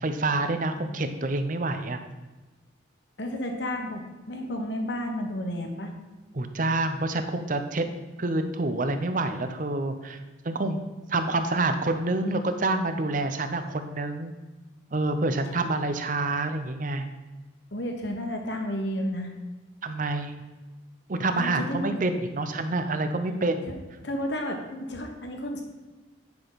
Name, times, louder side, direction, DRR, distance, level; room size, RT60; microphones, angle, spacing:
voice 1, 0.0-2.0 6.3-7.9 8.2-10.8 11.1-14.3 14.9-17.0 19.8-20.4 21.1-23.7, right 2 dB, 40° right, 8 dB, 0.7 m, -27 dB
voice 2, 3.2-4.0 4.3-5.9 17.7-19.3 21.4-21.9 23.7-23.8 24.0-25.6, equal, 60° left, 3 dB, 1.3 m, -31 dB
9.8 x 6.1 x 4.1 m, 1.2 s
head